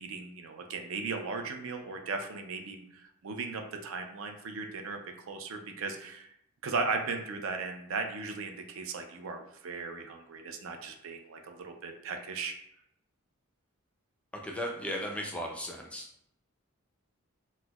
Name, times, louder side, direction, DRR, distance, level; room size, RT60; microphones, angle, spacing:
voice 1, 0.0-5.0 5.3-6.3 6.6-12.5, right 4 dB, 65° right, 5 dB, 0.4 m, -37 dB
voice 2, 14.4-16.1, equal, 5° left, 0 dB, 0.3 m, -36 dB
4.3 x 2.1 x 2.3 m, 0.76 s
head